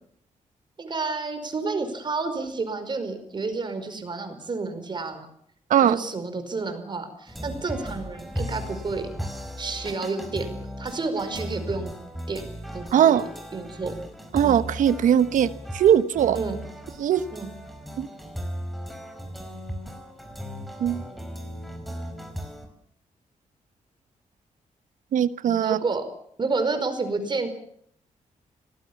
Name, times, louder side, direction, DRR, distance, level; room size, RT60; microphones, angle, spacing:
voice 1, 0.8-5.3 5.8-9.1 9.6-10.5 10.8-11.9 12.3-13.2 13.5-14.0 14.4-14.6 16.3-16.6 17.3-17.5 25.6-26.1 26.4-27.5, right 3 dB, 35° right, 8 dB, 5.0 m, -30 dB
sound 1, 7.3-22.7, equal, ahead, 4.9 m, -36 dB
voice 2, 12.9-13.3 14.3-16.4 17.0-17.2 18.0-18.1 20.8-21.0 25.1-25.8, right 9 dB, 85° right, 14 dB, 1.2 m, -20 dB
26.0 x 19.0 x 7.2 m, 0.67 s
cardioid pair, 120°, 13 cm